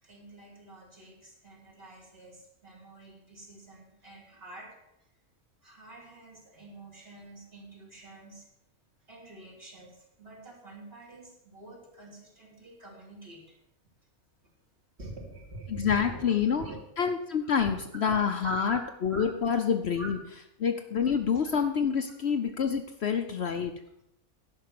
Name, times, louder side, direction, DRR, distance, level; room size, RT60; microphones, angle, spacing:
voice 1, 0.0-4.8 5.6-8.5 9.1-13.6 15.0-16.8 17.6-18.1 18.4-18.8 19.1-19.3 20.0-20.1, right 2 dB, 45° right, -2 dB, 3.2 m, -46 dB
voice 2, 15.7-16.6 17.0-20.2 20.6-23.7, left 7 dB, 55° left, 6 dB, 0.9 m, -27 dB
10.5 x 5.9 x 7.6 m, 0.82 s
omnidirectional pair, 1.4 m